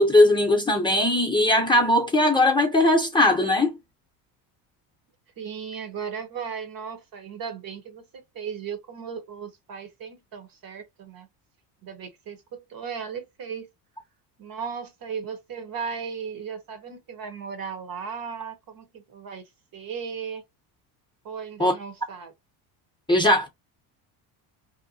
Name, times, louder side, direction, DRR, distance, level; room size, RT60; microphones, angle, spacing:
voice 1, 0.0-3.7 21.6-21.7 23.1-23.5, left 1 dB, 10° left, 0.7 m, -19 dB
voice 2, 5.4-11.3 11.8-13.7 14.4-20.4 21.2-22.3, right 6 dB, 45° right, 0.9 m, -36 dB
2.8 x 2.1 x 2.7 m
supercardioid pair, 95°, 48 cm